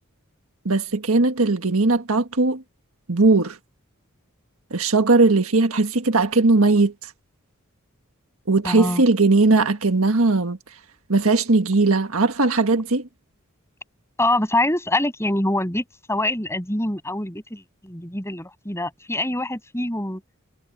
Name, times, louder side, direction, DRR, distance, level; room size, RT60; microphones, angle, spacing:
voice 1, 0.6-2.6 3.1-3.6 4.7-7.1 8.5-10.6 11.1-13.1, right 3 dB, 75° right, 1.6 m, -19 dB
voice 2, 8.6-9.0 14.2-20.2, left 1 dB, 15° left, 7.4 m, -25 dB
head